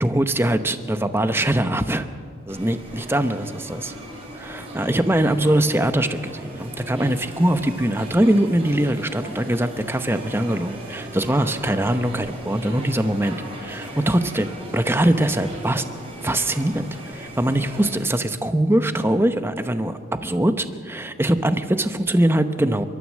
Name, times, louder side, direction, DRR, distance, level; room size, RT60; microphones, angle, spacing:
voice 1, 0.0-2.1 2.5-3.9 4.3-14.5 14.7-15.8 16.2-22.9, right 1 dB, 10° right, 9 dB, 0.8 m, -22 dB
sound 1, 2.5-18.0, right 1 dB, 30° right, 4.8 m, -37 dB
29.5 x 13.0 x 7.5 m, 2.1 s
head